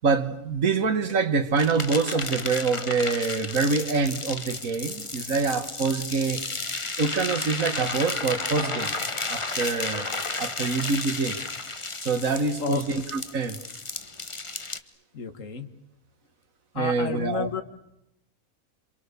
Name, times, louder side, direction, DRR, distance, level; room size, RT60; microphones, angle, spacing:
voice 1, 0.0-6.4 7.0-9.0 9.3-10.1 10.4-11.4 12.0-13.6 16.8-17.5, right 4 dB, 70° right, 2.0 m, -25 dB
sound 1, 1.6-14.8, left 3 dB, 25° left, 1.2 m, -33 dB
voice 2, 12.6-13.0 15.1-15.7 16.7-17.6, left 7 dB, 60° left, 2.0 m, -31 dB
27.5 x 27.5 x 6.9 m
omnidirectional pair, 1.5 m